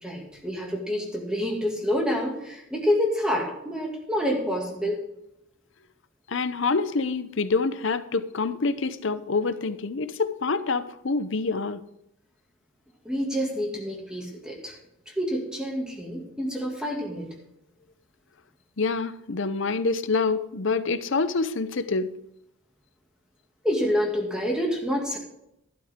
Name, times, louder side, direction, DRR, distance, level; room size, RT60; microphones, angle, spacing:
voice 1, 0.0-5.0 13.0-14.7 15.2-17.3 23.6-25.2, equal, 5° right, -1 dB, 2.2 m, -27 dB
voice 2, 6.3-11.8 18.8-22.1, left 4 dB, 60° left, 13 dB, 0.7 m, -26 dB
12.0 x 12.0 x 3.7 m, 0.81 s
head